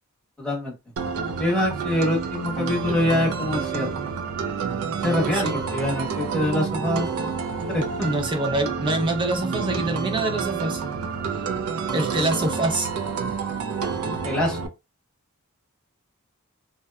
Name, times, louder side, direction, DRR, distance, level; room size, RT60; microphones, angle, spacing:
voice 1, 0.4-0.7 1.4-3.9 5.0-7.1 7.7-8.1 12.2-12.3 14.0-14.6, left 1 dB, 5° left, 1.0 m, -25 dB
sound 1, 1.0-14.7, right 5 dB, 80° right, 0.4 m, -29 dB
voice 2, 8.0-10.8 11.9-12.9, right 2 dB, 25° right, 0.5 m, -25 dB
2.7 x 2.1 x 2.3 m
head